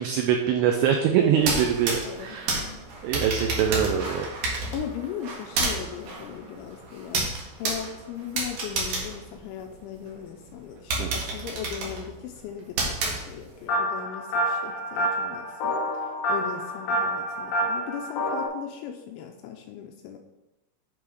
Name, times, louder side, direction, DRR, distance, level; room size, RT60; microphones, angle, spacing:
voice 1, 0.0-2.6 3.0-4.3 11.0-11.2, right 8 dB, 85° right, 3 dB, 2.5 m, -24 dB
voice 2, 1.2-1.5 2.0-2.8 4.7-15.8 16.3-20.2, left 9 dB, 85° left, 4 dB, 2.7 m, -38 dB
sound 1, 1.3-10.1 10.5-10.6 10.9-13.7, right 3 dB, 65° right, 2.2 m, -31 dB
sound 2, 13.7-18.5, equal, 70° left, 3.5 m, -28 dB
11.0 x 3.8 x 4.9 m, 0.99 s
omnidirectional pair, 5.8 m